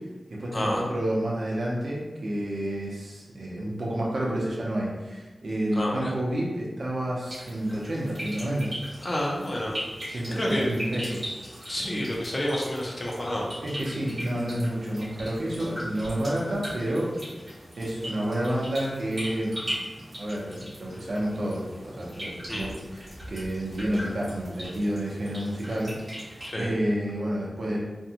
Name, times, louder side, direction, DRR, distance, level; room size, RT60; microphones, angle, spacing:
voice 1, 0.3-8.7 10.1-12.0 13.6-17.1 17.7-19.7 20.1-26.0 26.6-27.8, right 1 dB, 65° right, -4 dB, 0.7 m, -30 dB
voice 2, 5.7-6.1 9.0-9.7 10.3-10.7 11.7-13.5 22.5-22.7 26.4-26.7, left 1 dB, 35° left, -3 dB, 0.5 m, -29 dB
sound 1, 7.2-26.5, equal, 40° right, 1.1 m, -40 dB
2.6 x 2.2 x 2.8 m, 1.2 s
wide cardioid pair, 110°, 0 cm